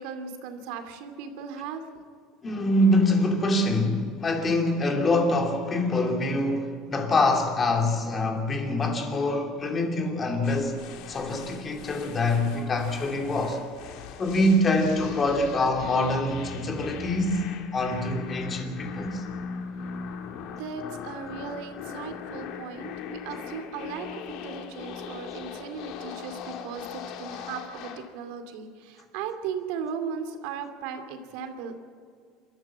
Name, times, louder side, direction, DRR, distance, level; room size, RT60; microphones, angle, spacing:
voice 1, 0.0-1.8 20.6-31.8, right 6 dB, 70° right, 2.4 m, -37 dB
voice 2, 2.4-10.8 11.1-13.6 14.2-17.4 17.7-19.2, left 1 dB, 20° left, 2.8 m, -25 dB
sound 1, 10.4-28.1, left 6 dB, 55° left, 1.9 m, -40 dB
27.0 x 13.5 x 7.5 m
cardioid pair, 150°, 0 cm